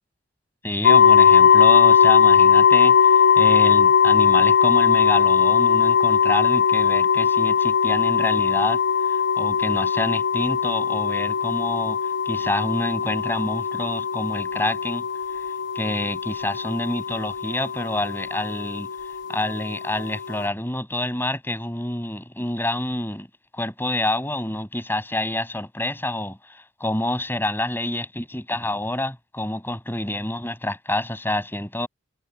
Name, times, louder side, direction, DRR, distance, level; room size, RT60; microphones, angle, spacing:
voice 1, 0.6-8.8 9.1-12.0 12.2-15.0 15.7-18.9 19.3-23.3 23.5-31.9, left 1 dB, 10° left, 6.6 m, -28 dB
sound 1, 0.8-20.5, left 7 dB, 70° left, 0.9 m, -19 dB
head